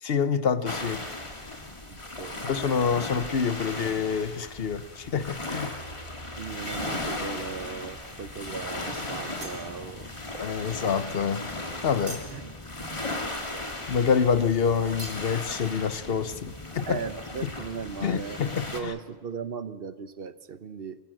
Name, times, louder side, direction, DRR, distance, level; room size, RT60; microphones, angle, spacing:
voice 1, 0.0-1.1 2.4-5.7 10.4-11.4 11.8-12.2 13.9-17.0 17.4-17.5 18.0-18.9, left 6 dB, 65° left, 1.0 m, -27 dB
sound 1, 0.7-18.8, left 2 dB, 30° left, 2.1 m, -37 dB
voice 2, 1.9-2.5 6.4-10.1 12.3-12.5 13.1-13.2 16.8-18.4 18.7-21.0, right 6 dB, 60° right, 1.0 m, -37 dB
sound 2, 6.6-7.3 7.7-8.2 8.7-8.8 9.1-10.2 10.4-14.2 14.5-14.6 15.0-15.4, right 1 dB, 75° right, 3.9 m, -46 dB
25.0 x 16.5 x 7.7 m
omnidirectional pair, 1.1 m